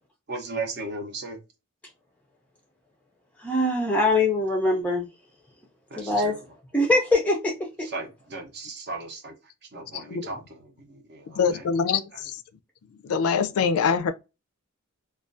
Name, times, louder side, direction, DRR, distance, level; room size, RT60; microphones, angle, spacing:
voice 1, 0.3-1.4 5.9-6.4 7.8-9.3 9.7-10.4 10.8-11.6, right 3 dB, 50° right, 0.6 m, -36 dB
voice 2, 3.4-5.1 6.0-6.4 6.7-7.9, left 2 dB, 5° left, 0.4 m, -23 dB
voice 3, 11.3-12.4 13.0-14.1, left 6 dB, 75° left, 0.4 m, -24 dB
2.3 x 2.2 x 2.5 m
head